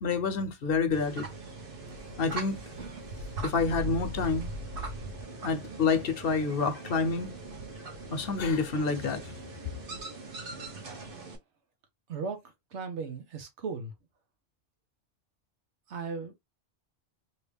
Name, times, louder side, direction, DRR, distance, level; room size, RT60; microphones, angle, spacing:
voice 1, 0.0-1.3 2.2-2.6 3.4-4.5 5.4-7.3 8.1-9.2, left 4 dB, 60° left, 0.9 m, -28 dB
sound 1, 0.9-11.4, right 2 dB, 55° right, 1.1 m, -40 dB
voice 2, 12.1-12.4 12.7-13.9 15.9-16.4, right 5 dB, 90° right, 1.3 m, -36 dB
3.0 x 2.8 x 3.3 m
omnidirectional pair, 1.2 m